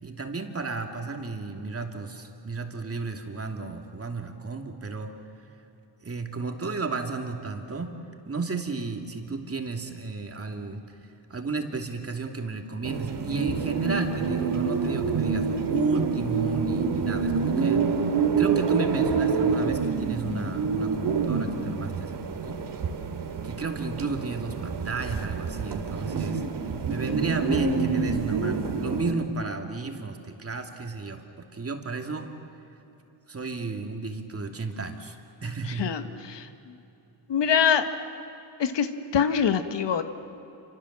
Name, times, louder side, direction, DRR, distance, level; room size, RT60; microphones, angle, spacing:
voice 1, 0.0-5.1 6.0-7.9 8.3-10.8 11.3-17.9 18.4-22.6 23.4-26.4 26.9-32.3 33.3-36.0, right 3 dB, 30° right, 4 dB, 2.8 m, -33 dB
sound 1, 12.8-29.1, right 5 dB, 65° right, 2.5 m, -27 dB
voice 2, 35.8-36.5 37.3-37.8 38.6-38.9 39.1-40.0, left 7 dB, 70° left, 9 dB, 1.6 m, -24 dB
28.0 x 25.5 x 7.6 m, 3.0 s
cardioid pair, 95°, 44 cm